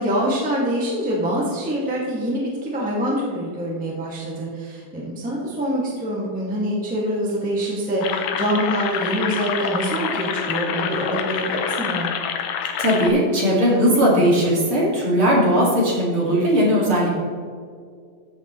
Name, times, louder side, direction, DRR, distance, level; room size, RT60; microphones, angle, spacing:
voice 1, 0.0-12.1, equal, 5° right, -5 dB, 0.6 m, -25 dB
sound 1, 8.0-13.1, left 7 dB, 75° left, 1.9 m, -27 dB
voice 2, 12.8-17.1, equal, 40° right, -4 dB, 2.7 m, -18 dB
14.5 x 7.8 x 3.2 m, 2.1 s
omnidirectional pair, 4.4 m